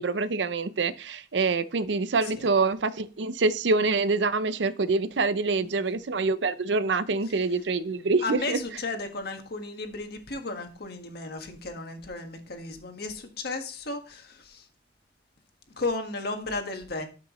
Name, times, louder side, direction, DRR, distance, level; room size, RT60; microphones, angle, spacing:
voice 1, 0.0-8.6, right 3 dB, 85° right, 0.6 m, -26 dB
voice 2, 8.2-14.7 15.8-17.1, left 3 dB, 60° left, 1.6 m, -34 dB
12.0 x 5.8 x 3.1 m
head